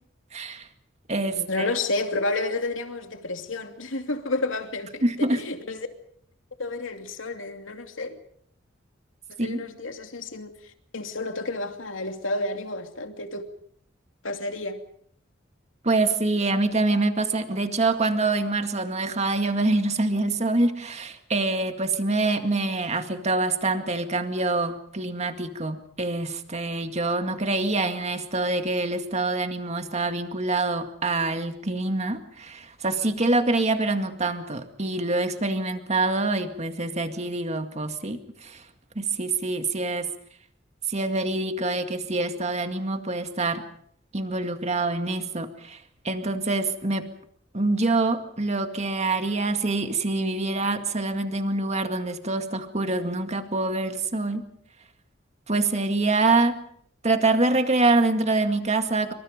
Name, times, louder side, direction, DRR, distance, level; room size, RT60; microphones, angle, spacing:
voice 1, 0.3-0.7 1.1-1.7 5.0-5.4 9.4-9.6 15.8-38.6 39.0-40.1 40.9-43.6 44.1-47.1 47.5-54.5 55.5-56.6 57.0-59.1, right 2 dB, 35° right, 2.1 m, -25 dB
voice 2, 1.3-5.9 6.6-8.2 9.3-13.4 14.2-14.8, left 2 dB, 90° left, 2.7 m, -31 dB
27.5 x 25.0 x 5.2 m
head